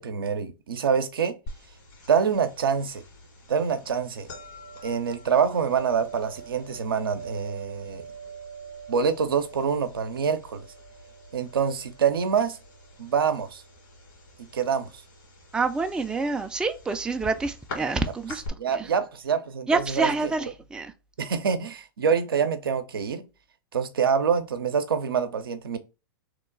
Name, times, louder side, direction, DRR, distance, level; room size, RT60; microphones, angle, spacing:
voice 1, 0.0-1.3 2.1-3.0 3.5-4.3 4.8-8.0 8.9-10.7 11.3-12.6 13.0-13.6 14.4-14.9 18.6-20.3 21.2-23.2 23.7-25.8, right 6 dB, 85° right, 0.6 m, -26 dB
sound 1, 1.5-18.5, right 2 dB, 65° left, 1.9 m, -44 dB
voice 2, 15.5-18.4 18.7-18.9 19.7-20.9, right 3 dB, 5° right, 0.3 m, -27 dB
3.0 x 2.2 x 3.7 m
hypercardioid pair, 110°, 12 cm